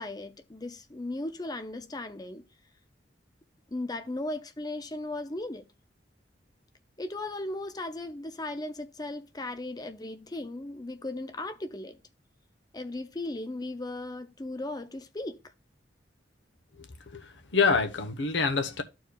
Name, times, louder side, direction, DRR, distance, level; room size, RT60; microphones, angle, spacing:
voice 1, 0.0-2.4 3.7-5.7 7.0-12.0 12.7-15.4, left 2 dB, 20° left, 0.6 m, -37 dB
voice 2, 16.8-18.8, left 4 dB, 80° left, 1.0 m, -27 dB
13.0 x 4.6 x 2.3 m
head